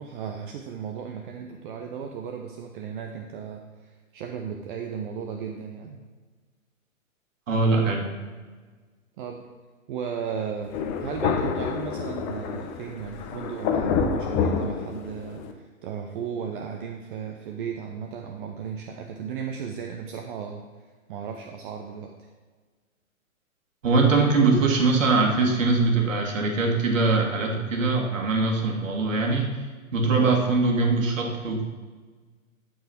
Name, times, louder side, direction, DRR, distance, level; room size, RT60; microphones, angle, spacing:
voice 1, 0.0-6.0 9.2-9.5 9.9-10.7 11.0-20.6 21.1-22.1 30.1-30.4, right 7 dB, 40° right, 3 dB, 0.8 m, -35 dB
voice 2, 7.5-8.1 23.8-29.5 29.9-31.6, right 3 dB, 65° right, 1 dB, 2.1 m, -22 dB
Thunder, 10.7-15.5, left 6 dB, 25° left, 0.7 m, -28 dB
14.0 x 4.8 x 4.4 m, 1.4 s
figure-of-eight pair, 120°, 42 cm